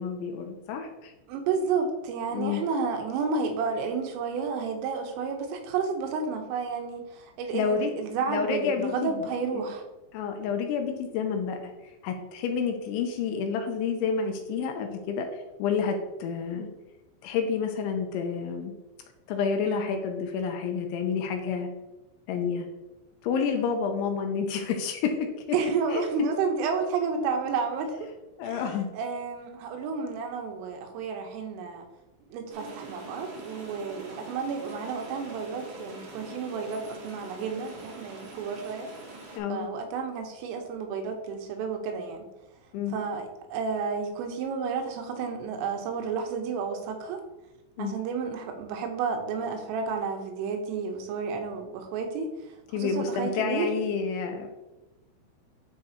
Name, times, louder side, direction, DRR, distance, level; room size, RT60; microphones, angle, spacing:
voice 1, 0.0-1.1 2.3-2.6 7.5-7.9 8.3-9.2 9.5-9.6 10.1-11.6 12.0-15.3 15.6-16.7 17.2-18.7 19.3-21.7 22.3-22.7 23.2-25.3 25.9-26.0 28.4-28.9 39.4-39.7 42.7-43.0 47.8-48.0 52.7-54.5, left 6 dB, 85° left, 4 dB, 2.9 m, -29 dB
voice 2, 1.3-9.8 19.7-19.9 23.5-23.8 25.5-28.1 28.4-28.6 28.9-31.9 32.3-38.9 39.5-42.3 42.9-47.2 47.8-52.3 52.7-53.7, right 5 dB, 85° right, 4 dB, 3.6 m, -31 dB
sound 1, 32.5-39.4, right 2 dB, 70° right, 4.3 m, -44 dB
12.0 x 4.9 x 2.9 m, 1.0 s
omnidirectional pair, 5.7 m